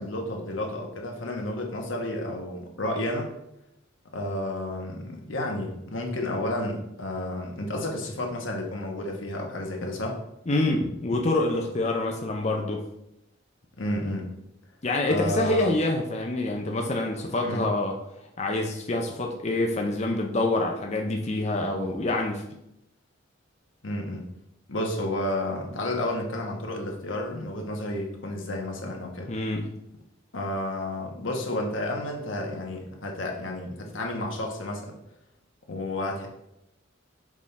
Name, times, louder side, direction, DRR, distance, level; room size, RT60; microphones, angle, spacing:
voice 1, 0.0-3.3 4.1-10.2 13.8-14.3 15.1-15.7 17.4-17.7 23.8-24.3 24.7-29.3 30.3-35.0 35.7-36.3, left 1 dB, 85° left, 1 dB, 1.3 m, -31 dB
voice 2, 10.5-12.9 14.8-18.0 18.4-22.5 29.3-29.8, left 2 dB, 35° left, 1 dB, 0.6 m, -26 dB
6.3 x 3.7 x 4.2 m, 0.83 s
head